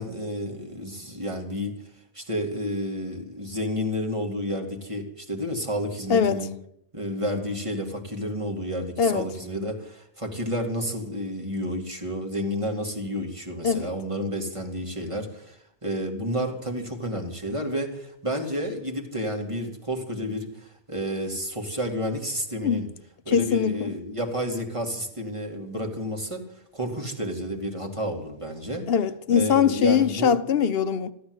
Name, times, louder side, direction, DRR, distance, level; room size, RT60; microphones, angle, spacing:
voice 1, 0.0-1.8 2.1-6.5 6.9-22.9 23.3-26.4 26.7-28.8 29.3-30.3, equal, 25° right, 2.4 m, -30 dB
voice 2, 6.1-6.5 9.0-9.3 13.6-13.9 22.6-22.9 23.3-23.9 28.9-31.1, left 7 dB, 60° left, 0.9 m, -22 dB
14.5 x 12.5 x 7.9 m
omnidirectional pair, 1.2 m